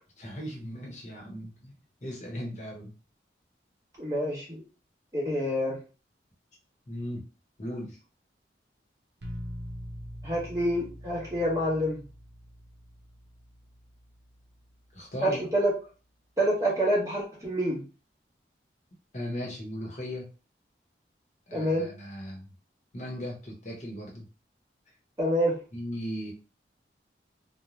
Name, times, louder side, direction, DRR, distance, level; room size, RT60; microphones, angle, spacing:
voice 1, 0.2-1.7 2.0-2.9 6.9-7.2 7.6-8.0 14.9-15.5 19.1-20.2 21.5-22.5 22.9-24.3 25.7-26.3, equal, 40° left, -1 dB, 0.9 m, -37 dB
voice 2, 4.0-4.6 5.1-5.8 10.2-12.0 15.2-15.7 16.4-17.8 21.5-21.9 25.2-25.6, equal, 20° right, -6 dB, 0.8 m, -27 dB
sound 1, 9.2-15.0, equal, 75° right, 0.6 m, -44 dB
2.5 x 2.1 x 3.0 m, 0.34 s
head